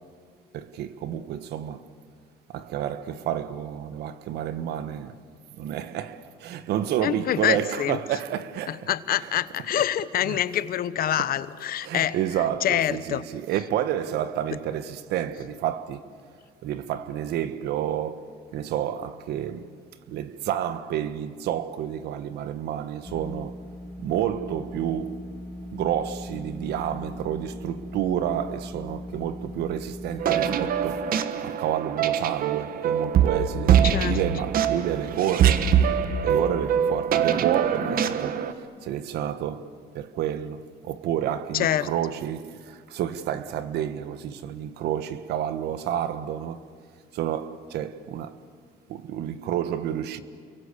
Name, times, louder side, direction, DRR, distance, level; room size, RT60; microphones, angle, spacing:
voice 1, 0.5-1.9 2.5-5.2 5.6-8.9 9.1-10.4 11.8-16.1 16.6-19.7 20.1-23.6 24.0-25.3 25.7-31.1 31.4-35.8 36.2-46.6 47.1-48.4 48.9-50.2, right 10 dB, 80° right, 1.4 m, -30 dB
voice 2, 7.0-8.0 8.7-12.2 12.6-13.2 33.8-34.2 41.5-41.9, left 11 dB, 60° left, 1.1 m, -26 dB
sound 1, 23.0-31.1, equal, 10° left, 6.1 m, -39 dB
sound 2, 30.2-38.5, right 8 dB, 60° right, 1.5 m, -23 dB
29.5 x 23.0 x 8.4 m
cardioid pair, 110°, 17 cm